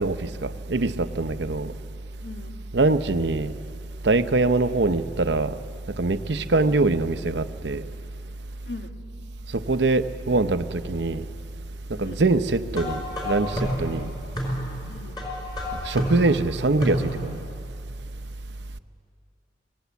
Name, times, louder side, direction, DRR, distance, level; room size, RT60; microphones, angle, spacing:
voice 1, 0.0-1.7 2.7-3.5 4.0-5.5 6.0-7.8 9.5-11.3 12.0-14.1 15.8-17.4, right 3 dB, 75° right, 0.8 m, -23 dB
voice 2, 2.2-2.6 6.3-6.5 8.6-8.9 11.9-12.2 14.9-15.2, left 3 dB, 65° left, 1.7 m, -40 dB
sound 1, 12.7-17.4, equal, 25° left, 5.1 m, -30 dB
27.0 x 19.0 x 8.2 m
head